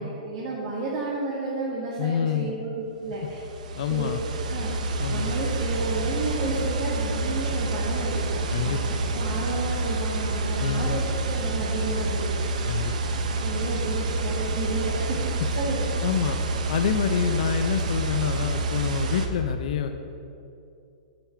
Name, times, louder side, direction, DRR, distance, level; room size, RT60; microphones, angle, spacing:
voice 1, 0.0-3.4 3.9-13.0 13.4-15.3 15.5-15.9, right 2 dB, 45° right, -6 dB, 1.4 m, -32 dB
voice 2, 2.0-2.5 3.8-4.2 5.0-5.3 8.5-9.0 10.6-11.0 12.7-12.9 16.0-16.4 16.7-20.0, left 8 dB, 65° left, 7 dB, 0.4 m, -27 dB
sound 1, 3.2-19.3, right 2 dB, 75° right, 0.7 m, -28 dB
8.9 x 3.6 x 5.6 m, 2.6 s
hypercardioid pair, 140°, 4 cm